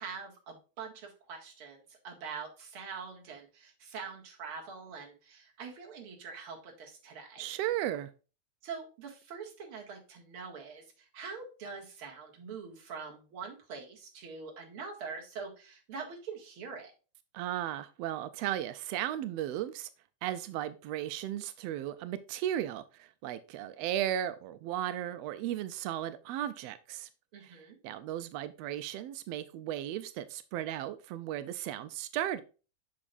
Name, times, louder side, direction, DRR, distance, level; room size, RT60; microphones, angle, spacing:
voice 1, 0.0-7.5 8.6-16.9 27.3-27.8, right 5 dB, 50° right, 2.4 m, -44 dB
voice 2, 7.4-8.1 17.3-19.9 20.2-27.1 27.4-27.6 27.8-32.4, right 12 dB, 90° right, 1.4 m, -35 dB
8.6 x 6.2 x 2.4 m
omnidirectional pair, 3.4 m